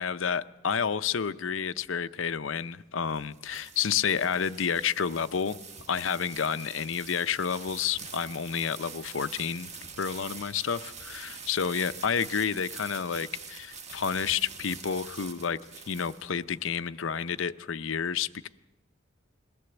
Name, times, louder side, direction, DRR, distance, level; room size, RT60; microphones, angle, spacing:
voice 1, 0.0-5.6 5.9-9.7 10.0-15.6 15.9-18.5, left 7 dB, 70° left, 13 dB, 0.6 m, -30 dB
sound 1, 2.8-16.6, right 5 dB, 35° right, 1.3 m, -45 dB
21.5 x 16.5 x 8.0 m, 1.1 s
head